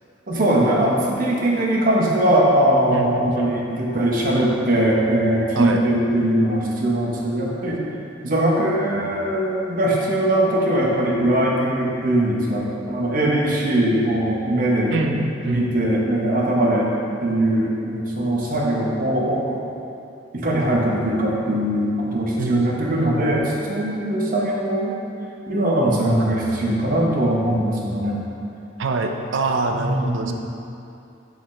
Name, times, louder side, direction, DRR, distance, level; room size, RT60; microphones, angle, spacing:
voice 1, 0.3-7.9 8.2-14.9 15.4-16.9 17.2-19.6 20.3-25.0 25.5-28.3 29.7-30.3, right 1 dB, 50° right, -3 dB, 0.9 m, -21 dB
voice 2, 2.9-3.5 5.6-5.8 14.9-15.7 22.4-23.1 28.8-30.3, right 3 dB, 85° right, 4 dB, 0.5 m, -25 dB
7.0 x 4.9 x 3.2 m, 2.7 s
head